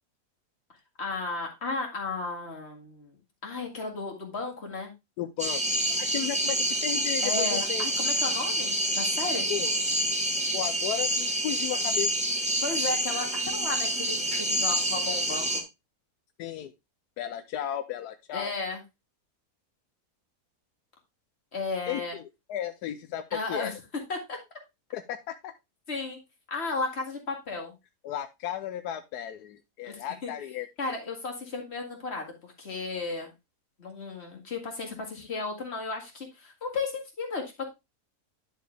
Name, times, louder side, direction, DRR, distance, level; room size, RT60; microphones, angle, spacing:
voice 1, 1.0-3.2 3.4-4.9 7.2-9.5 12.6-15.6 18.3-18.8 21.5-22.2 23.3-23.7 24.1-24.4 25.9-26.2 26.5-27.7 29.8-30.3 30.8-33.3 33.8-37.6, left 3 dB, 40° left, 1 dB, 2.3 m, -34 dB
voice 2, 5.2-7.8 9.5-9.7 10.5-12.1 16.4-16.7 17.2-18.5 21.9-23.7 24.9-25.5 28.0-30.7, left 11 dB, 85° left, 9 dB, 1.2 m, -34 dB
sound 1, 5.4-15.6, right 1 dB, 5° right, 1.1 m, -27 dB
10.5 x 4.7 x 3.4 m, 0.23 s
omnidirectional pair, 1.6 m